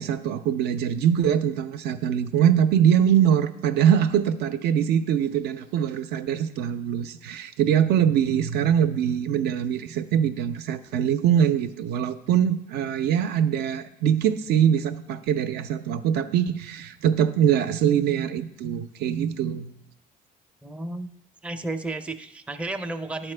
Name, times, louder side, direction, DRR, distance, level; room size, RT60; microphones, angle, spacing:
voice 1, 0.0-19.7, right 9 dB, 75° right, 9 dB, 0.5 m, -23 dB
voice 2, 20.6-21.1 21.4-23.3, right 2 dB, 5° right, 6 dB, 0.4 m, -32 dB
11.0 x 4.3 x 3.3 m, 0.86 s
cardioid pair, 110°, 17 cm